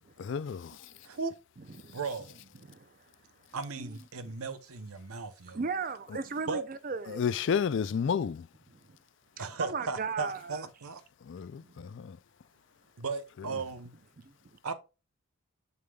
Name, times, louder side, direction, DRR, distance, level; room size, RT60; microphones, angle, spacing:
voice 1, 0.2-0.9 7.1-8.5 11.2-12.2 13.4-13.6, left 7 dB, 55° left, 0.3 m, -31 dB
voice 2, 1.9-2.4 3.5-5.6 6.5-6.6 9.4-11.0 13.0-13.9 14.6-14.7, right 4 dB, 85° right, 0.7 m, -36 dB
voice 3, 2.7-3.0 3.8-3.9 4.2-4.3 5.5-7.2 8.8-9.0 9.4-10.6 11.6-11.9 14.2-14.6, right 4 dB, 40° right, 0.5 m, -37 dB
6.8 x 6.6 x 2.3 m
head